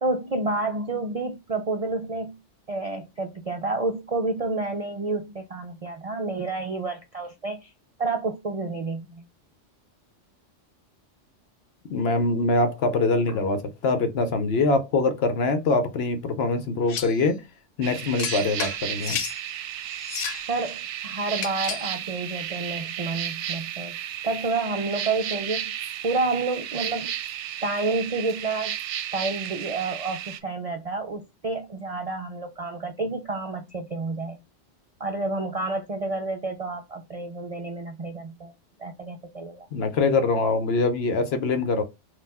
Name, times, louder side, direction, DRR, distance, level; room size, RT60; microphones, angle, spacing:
voice 1, 0.0-2.4 2.7-7.7 8.0-9.2 13.3-13.4 20.5-24.0 24.2-25.7 26.0-27.1 27.6-28.7 29.1-34.4 35.0-38.5 38.8-39.7, right 3 dB, 50° right, 0.4 m, -29 dB
voice 2, 11.9-17.4 17.8-19.2 39.7-41.8, left 3 dB, 65° left, 0.9 m, -23 dB
sound 1, 16.9-17.2 18.2-19.4 20.0-20.5 21.4-21.9, left 8 dB, 90° left, 1.0 m, -32 dB
sound 2, 17.8-30.4, right 10 dB, 75° right, 0.8 m, -33 dB
4.2 x 2.4 x 4.0 m
omnidirectional pair, 1.2 m